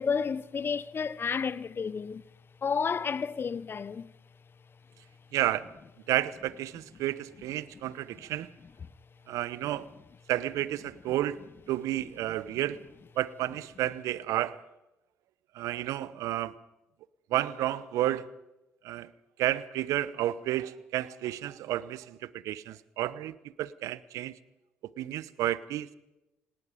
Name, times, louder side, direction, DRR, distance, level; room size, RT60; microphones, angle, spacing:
voice 1, 0.0-2.2 2.6-4.1 7.8-7.9, left 6 dB, 40° left, 0.9 m, -31 dB
voice 2, 5.3-5.7 6.1-8.5 9.3-9.9 10.3-11.4 11.7-12.8 13.2-14.6 15.5-16.5 17.3-18.2 18.8-19.1 19.4-24.4 25.0-25.9, right 14 dB, 70° right, 0.9 m, -31 dB
28.0 x 19.0 x 5.2 m
hypercardioid pair, 55°, 6 cm